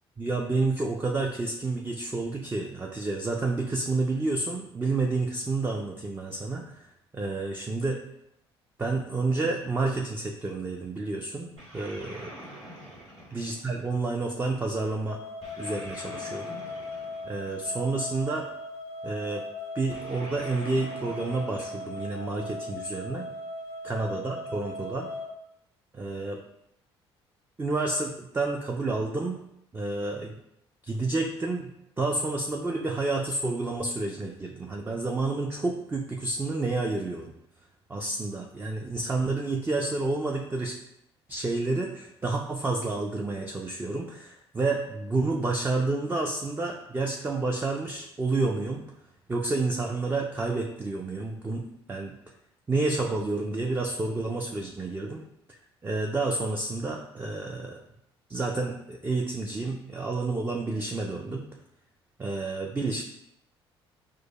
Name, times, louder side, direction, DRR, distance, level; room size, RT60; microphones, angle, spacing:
voice 1, 0.2-6.9 7.1-8.0 8.8-12.3 13.3-15.2 15.6-16.6 17.2-18.5 19.0-19.4 19.7-23.3 23.8-25.1 25.9-26.4 27.6-29.4 29.7-30.4 30.8-31.7 32.0-37.3 37.9-40.8 41.3-48.8 49.3-52.2 52.7-55.2 55.5-55.6 55.8-57.8 58.3-61.4 62.2-63.0, right 3 dB, 15° right, 2 dB, 0.4 m, -29 dB
sound 1, 11.6-14.2 15.4-18.0 19.9-22.5, right 1 dB, 55° right, 1.5 m, -46 dB
sound 2, 15.1-25.3, left 2 dB, 75° left, 0.5 m, -39 dB
6.1 x 2.2 x 2.2 m, 0.79 s
figure-of-eight pair, 50°, 14 cm